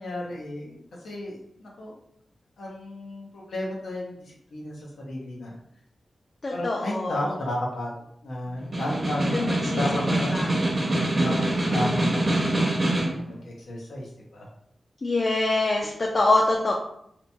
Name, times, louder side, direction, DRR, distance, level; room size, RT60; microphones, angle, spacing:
voice 1, 0.0-1.9 2.6-5.6 6.5-7.9 8.2-10.4 11.1-12.2 12.6-14.5, left 1 dB, 90° left, -3 dB, 0.6 m, -33 dB
voice 2, 6.4-7.2 9.3-10.5 11.2-12.1 15.0-16.7, left 2 dB, 40° left, -1 dB, 0.3 m, -26 dB
Snare drum, 8.6-13.2, right 1 dB, 30° right, 0.6 m, -25 dB
2.8 x 2.1 x 2.6 m, 0.72 s
wide cardioid pair, 120°, 0 cm